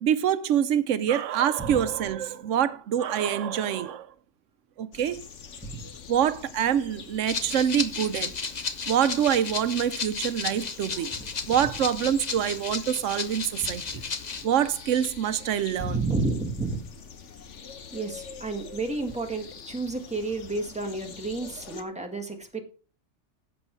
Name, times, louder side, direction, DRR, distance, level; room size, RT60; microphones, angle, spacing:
voice 1, 0.0-4.1 4.8-5.2 6.1-8.3 8.9-11.1 11.5-14.0 14.4-16.0, right 9 dB, 85° right, 1.0 m, -25 dB
sound 1, 4.9-21.8, left 6 dB, 75° left, 1.3 m, -45 dB
Rattle (instrument), 7.3-14.4, left 5 dB, 40° left, 0.9 m, -34 dB
voice 2, 15.8-16.8 17.9-22.6, right 3 dB, 5° right, 1.8 m, -31 dB
11.0 x 7.6 x 4.5 m
omnidirectional pair, 1.3 m